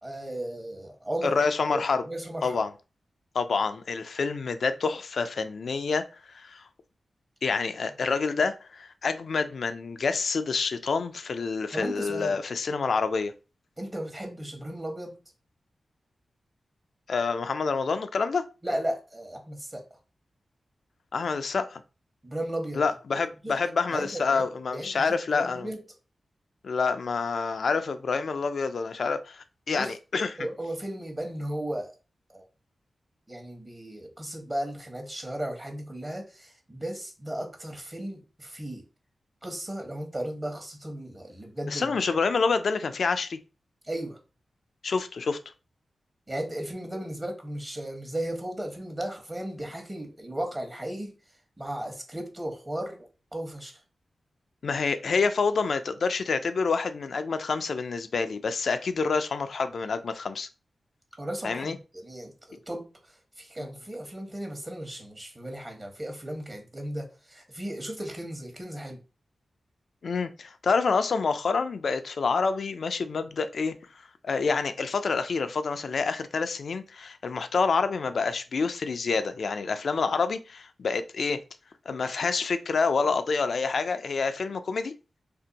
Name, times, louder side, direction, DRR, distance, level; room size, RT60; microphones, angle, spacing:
voice 1, 0.0-1.4 1.7-2.6 11.7-12.4 13.8-15.2 18.6-19.9 22.2-22.8 23.4-23.6 23.9-24.4 24.7-25.1 25.3-25.8 29.7-29.9 30.4-31.9 32.3-32.5 33.3-38.8 39.4-42.0 43.8-44.2 46.3-51.1 51.6-53.8 61.2-69.0, right 1 dB, 30° right, 1.0 m, -35 dB
voice 2, 1.2-2.0 2.4-2.7 3.3-6.1 6.3-6.6 7.4-13.3 17.1-18.4 21.1-21.8 22.7-25.7 26.6-30.3 41.7-43.4 44.8-45.4 54.6-60.5 61.4-61.8 70.0-73.8 74.2-81.4 81.9-84.9, left 4 dB, 70° left, 0.3 m, -27 dB
2.6 x 2.1 x 3.9 m
cardioid pair, 50°, 0 cm